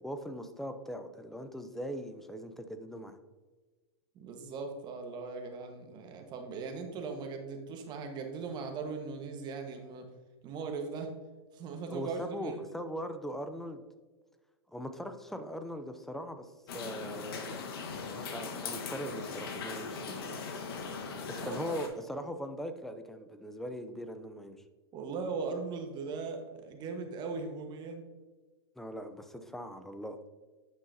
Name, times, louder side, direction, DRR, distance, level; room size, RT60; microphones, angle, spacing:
voice 1, 0.0-3.2 11.9-13.8 14.7-17.6 18.1-20.4 21.2-24.6 28.8-30.2, equal, ahead, 8 dB, 0.5 m, -40 dB
voice 2, 4.1-10.1 10.4-11.1 11.5-12.6 21.5-21.8 24.9-28.0, right 4 dB, 30° right, 4 dB, 1.3 m, -39 dB
sound 1, 16.7-21.9, left 4 dB, 60° left, 1.4 m, -39 dB
9.2 x 5.6 x 2.7 m, 1.3 s
hypercardioid pair, 125°, 14 cm